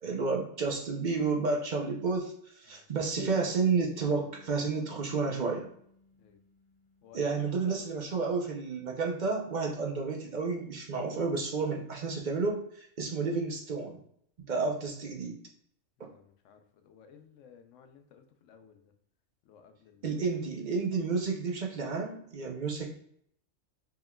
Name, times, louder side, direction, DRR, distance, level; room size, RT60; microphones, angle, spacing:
voice 1, 0.0-2.3 2.6-5.7 7.1-14.0 14.5-15.4 20.0-23.0, right 4 dB, 50° right, 0 dB, 0.7 m, -31 dB
sound 1, 3.2-8.2, equal, 55° left, 0.3 m, -50 dB
voice 2, 16.0-18.8 19.5-20.0, left 7 dB, 85° left, 7 dB, 0.9 m, -57 dB
4.3 x 3.7 x 2.2 m, 0.68 s
omnidirectional pair, 1.3 m